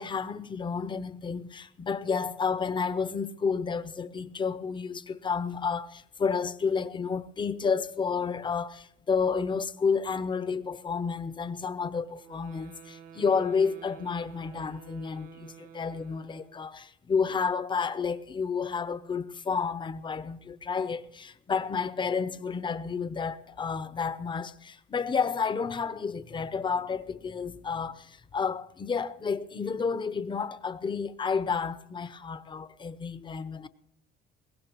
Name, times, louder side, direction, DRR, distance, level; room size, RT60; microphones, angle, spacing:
voice 1, 0.0-33.7, left 5 dB, 30° left, 0.8 m, -31 dB
sound 1, 12.2-16.7, right 8 dB, 60° right, 1.3 m, -50 dB
22.0 x 17.5 x 3.0 m
cardioid pair, 110°, 17 cm